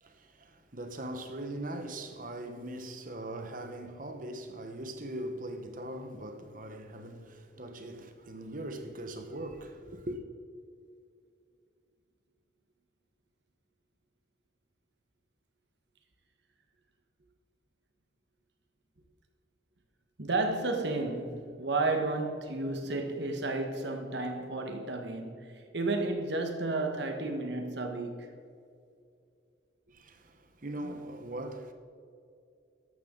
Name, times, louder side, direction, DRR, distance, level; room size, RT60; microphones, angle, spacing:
voice 1, 0.0-10.2 29.9-31.7, right 1 dB, 45° right, 1.1 m, -40 dB
voice 2, 20.2-28.3, right 2 dB, 65° right, 1.6 m, -32 dB
14.0 x 12.0 x 4.0 m
head